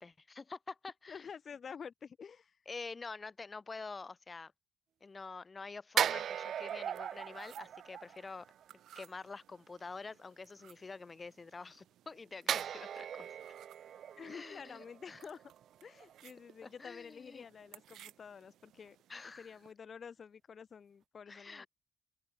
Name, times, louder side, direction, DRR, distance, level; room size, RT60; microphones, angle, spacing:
voice 1, 0.0-1.2 2.7-4.5 5.0-8.5 9.0-13.3 14.3-15.2 16.6-17.5 19.1-19.6 21.3-21.7, left 4 dB, 30° left, 0.4 m, -47 dB
voice 2, 1.1-2.6 14.2-15.4 15.8-19.0 19.4-21.7, left 6 dB, 45° left, 1.6 m, -49 dB
sound 1, 6.0-8.6 12.5-15.7 16.0-16.2, right 9 dB, 65° right, 0.4 m, -38 dB
sound 2, 6.2-19.7, right 12 dB, 80° right, 4.7 m, -62 dB
open air
cardioid pair, 90°, 0 cm